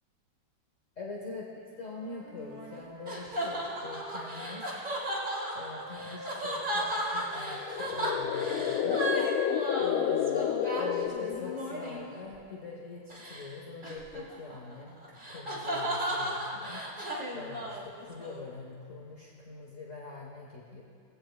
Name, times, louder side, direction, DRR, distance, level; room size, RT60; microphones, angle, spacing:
voice 1, 1.0-1.5 1.7-4.7 5.5-9.0 9.8-10.5 10.8-16.8 17.3-20.8, left 3 dB, 40° left, -3 dB, 1.6 m, -44 dB
Wind instrument woodwind instrument, 1.8-5.4 5.7-10.0, right 1 dB, 90° right, 2.7 m, -50 dB
sound 1, 2.3-12.2 13.1-13.5 13.8-18.4, right 1 dB, 25° right, 1.8 m, -35 dB
sound 2, 7.5-11.9, left 9 dB, 85° left, 1.4 m, -30 dB
19.5 x 16.0 x 2.4 m, 2.2 s
omnidirectional pair, 2.2 m